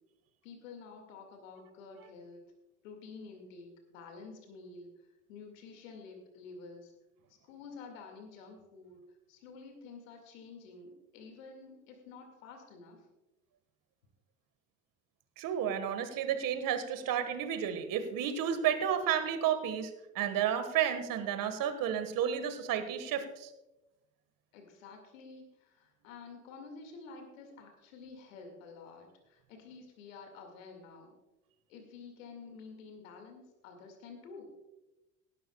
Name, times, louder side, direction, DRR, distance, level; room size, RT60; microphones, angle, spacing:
voice 1, 0.4-2.5 2.8-4.9 5.3-6.9 7.5-13.0 24.5-31.1 31.7-34.5, left 4 dB, 80° left, 4 dB, 2.3 m, -50 dB
voice 2, 15.4-23.5, right 9 dB, 55° right, 9 dB, 1.7 m, -32 dB
18.0 x 11.5 x 2.4 m, 0.98 s
hypercardioid pair, 60°, 39 cm